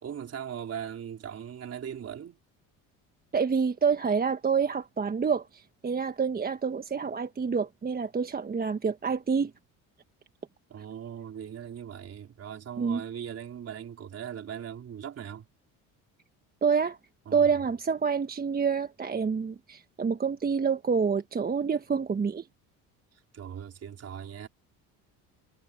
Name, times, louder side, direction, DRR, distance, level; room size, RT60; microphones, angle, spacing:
voice 1, 0.0-2.4 10.7-15.5 17.3-17.5 23.3-24.5, right 8 dB, 45° right, 4.2 m, -39 dB
voice 2, 3.3-9.5 12.8-13.0 16.6-17.0 17.3-22.4, right 6 dB, 25° right, 1.3 m, -27 dB
supercardioid pair, 95°, 35 cm